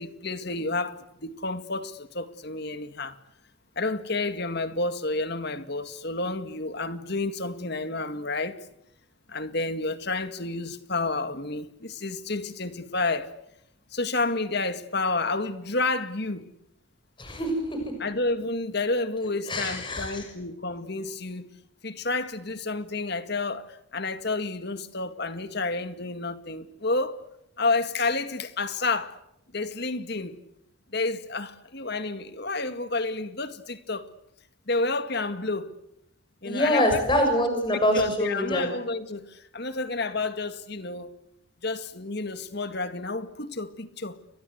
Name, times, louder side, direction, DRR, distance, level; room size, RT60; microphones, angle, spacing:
voice 1, 0.0-3.2 3.8-8.6 9.3-13.3 13.9-16.5 18.0-21.5 21.8-27.2 27.6-29.2 29.5-30.4 30.9-34.1 34.7-35.8 36.4-37.0 37.5-41.1 41.6-44.2, left 3 dB, 50° left, 2.1 m, -30 dB
voice 2, 17.2-17.8 19.5-20.2 36.4-38.7, equal, 25° left, 6.6 m, -25 dB
30.0 x 23.5 x 8.1 m
head